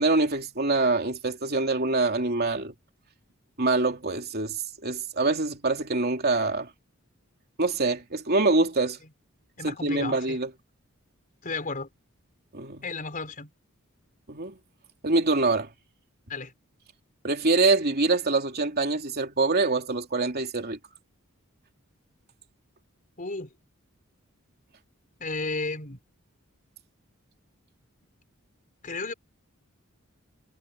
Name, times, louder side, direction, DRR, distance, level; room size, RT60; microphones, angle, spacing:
voice 1, 0.0-2.7 3.6-6.7 7.6-9.0 9.6-10.5 12.5-12.8 14.3-14.6 15.0-15.7 17.2-20.8, right 3 dB, 50° right, 2.9 m, -25 dB
voice 2, 9.6-10.4 11.4-11.9 12.8-13.5 16.3-16.5 23.2-23.5 25.2-26.0 28.8-29.1, left 3 dB, 40° left, 4.8 m, -33 dB
head